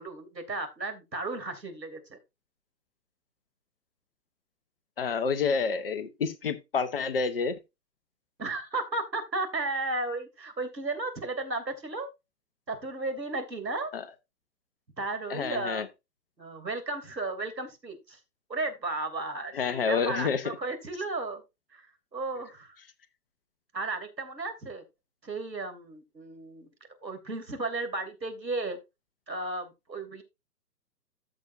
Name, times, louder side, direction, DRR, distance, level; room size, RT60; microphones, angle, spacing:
voice 1, 0.0-2.2 8.4-12.1 12.7-13.9 15.0-15.9 16.4-18.2 18.5-21.4 21.7-21.9 22.1-22.8 23.7-24.8 25.2-26.7 27.0-28.8 29.3-30.2, right 2 dB, 80° right, 3.0 m, -34 dB
voice 2, 5.0-7.6 13.9-14.0 15.3-15.9 19.5-20.4, left 5 dB, 35° left, 1.0 m, -28 dB
14.0 x 6.2 x 2.6 m
figure-of-eight pair, 130°, 50 cm